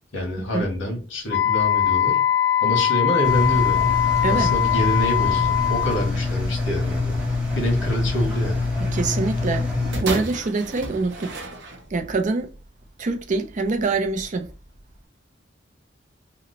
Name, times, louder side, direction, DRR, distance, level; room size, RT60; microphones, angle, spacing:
voice 1, 0.1-2.2 2.6-4.0 4.3-7.2 7.5-8.6, equal, 85° left, 1.2 m, -26 dB
Wind instrument woodwind instrument, 1.3-6.1, left 10 dB, 60° left, 0.4 m, -21 dB
Engine, 3.2-10.0, left 3 dB, 5° right, 0.8 m, -25 dB
voice 2, 8.9-11.3 11.9-12.5 13.0-14.5, right 3 dB, 40° right, 0.4 m, -25 dB
sound 1, 9.9-12.2 13.0-13.1, right 2 dB, 65° right, 0.7 m, -32 dB
2.9 x 2.1 x 3.7 m
head